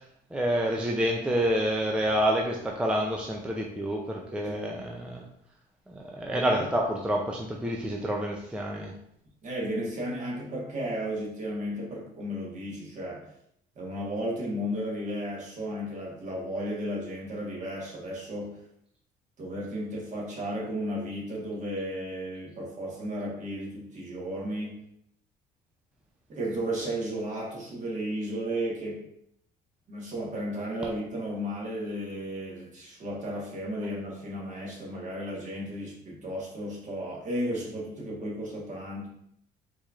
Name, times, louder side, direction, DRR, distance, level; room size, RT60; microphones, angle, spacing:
voice 1, 0.3-5.3 5.9-8.9, equal, 5° right, -1 dB, 0.4 m, -28 dB
voice 2, 4.4-4.8 6.3-6.4 9.4-13.3 13.7-18.6 19.4-24.8 26.3-29.0 29.9-39.1, equal, 45° right, -4 dB, 1.4 m, -34 dB
4.6 x 2.9 x 2.4 m, 0.72 s
cardioid pair, 110°, 17 cm